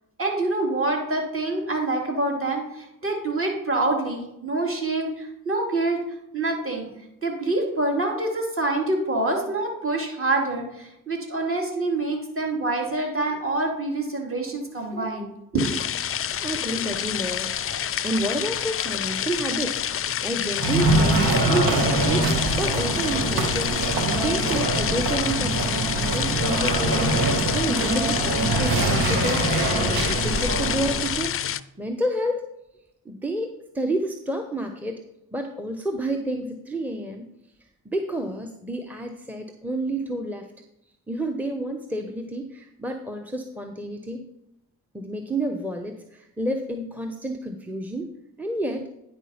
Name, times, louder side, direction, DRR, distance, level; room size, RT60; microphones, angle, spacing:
voice 1, 0.2-6.0 6.3-6.9 7.2-15.7, right 2 dB, 35° right, 0 dB, 3.0 m, -26 dB
sound 1, 15.6-31.6, left 9 dB, 40° left, 0.4 m, -28 dB
voice 2, 16.4-29.5 29.8-31.4 31.8-32.4 33.0-35.0 35.3-37.3 37.8-40.5 41.1-44.3 44.9-48.1 48.4-48.9, right 1 dB, 5° right, 5 dB, 0.9 m, -30 dB
sound 2, 20.5-31.2, right 2 dB, 85° right, 1.5 m, -24 dB
9.9 x 4.3 x 5.7 m, 0.85 s
supercardioid pair, 55°, 37 cm